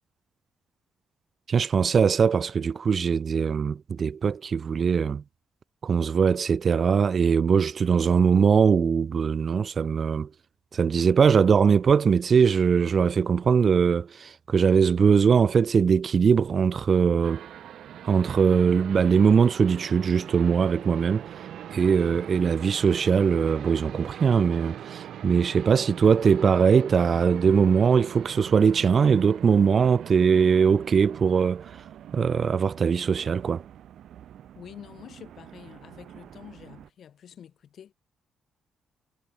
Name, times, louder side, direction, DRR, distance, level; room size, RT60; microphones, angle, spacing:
voice 1, 1.5-5.2 5.8-10.3 10.7-17.4 18.0-21.3 21.7-31.8 32.1-33.6, right 6 dB, 35° right, 0.3 m, -21 dB
sound 1, 17.2-36.9, right 11 dB, 65° right, 0.7 m, -42 dB
voice 2, 34.5-37.9, left 9 dB, 50° left, 4.4 m, -47 dB
cardioid pair, 150°, 0 cm